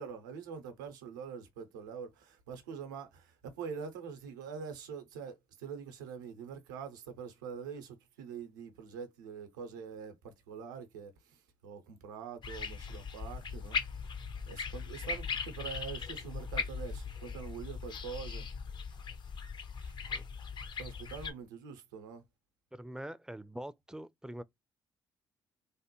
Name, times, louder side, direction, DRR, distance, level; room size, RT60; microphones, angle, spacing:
voice 1, 0.0-14.2 14.5-18.5 19.8-19.9 20.8-22.2, right 6 dB, 85° right, 0.7 m, -45 dB
sound 1, 12.4-21.3, left 5 dB, 50° left, 0.6 m, -39 dB
voice 2, 22.7-24.4, right 1 dB, 5° right, 0.4 m, -44 dB
3.3 x 2.1 x 3.0 m
hypercardioid pair, 45°, 10 cm